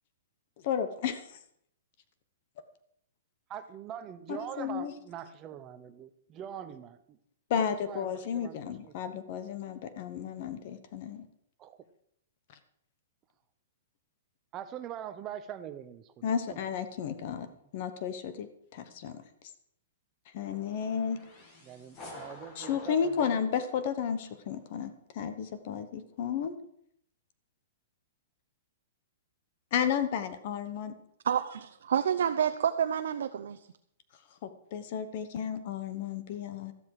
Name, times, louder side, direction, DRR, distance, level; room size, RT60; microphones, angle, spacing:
voice 1, 0.6-1.4 4.3-4.9 7.5-11.3 16.2-17.5 17.7-19.2 20.3-21.2 22.6-26.5 29.7-30.9 34.4-36.7, left 8 dB, 35° left, 11 dB, 1.0 m, -33 dB
voice 2, 3.5-7.2 7.6-8.9 11.6-11.8 14.5-16.6 21.6-23.5, right 10 dB, 20° right, 9 dB, 0.8 m, -43 dB
sound 1, 20.4-24.4, left 2 dB, 20° left, 2.1 m, -50 dB
voice 3, 31.2-33.6, right 8 dB, 70° right, 8 dB, 0.7 m, -29 dB
13.5 x 12.5 x 4.8 m, 0.72 s
hypercardioid pair, 175°, 0 cm